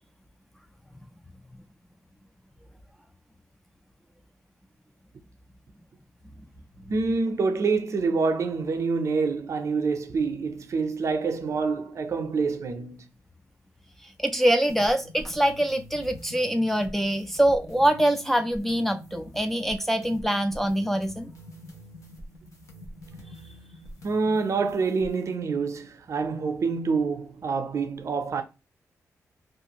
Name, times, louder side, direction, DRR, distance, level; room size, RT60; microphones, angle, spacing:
voice 1, 6.9-13.0 24.0-28.4, right 4 dB, 55° right, 0.5 m, -26 dB
voice 2, 14.2-21.3, right 1 dB, 5° left, 0.3 m, -24 dB
sound 1, 14.7-25.4, equal, 60° left, 0.8 m, -46 dB
2.5 x 2.4 x 2.8 m
cardioid pair, 100°, 6 cm